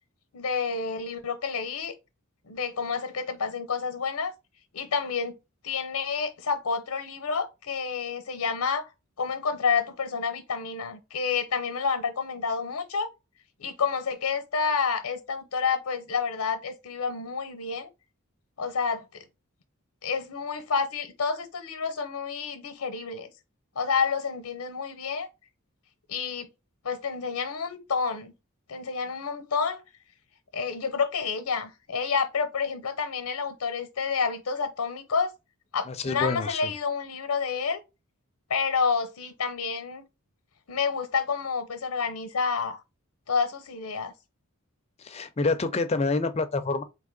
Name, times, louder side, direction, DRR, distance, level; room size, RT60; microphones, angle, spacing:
voice 1, 0.3-1.9 2.5-4.3 4.7-5.4 5.6-8.9 9.2-13.1 13.6-17.9 18.6-19.2 20.0-23.3 23.7-25.3 26.1-26.5 26.8-28.3 28.7-29.8 30.5-35.3 35.7-37.8 38.5-40.0 40.7-42.8 43.3-44.1, left 5 dB, 90° left, 0.7 m, -29 dB
voice 2, 35.9-36.7 45.0-46.8, left 3 dB, 30° left, 0.4 m, -27 dB
3.7 x 2.8 x 3.7 m
head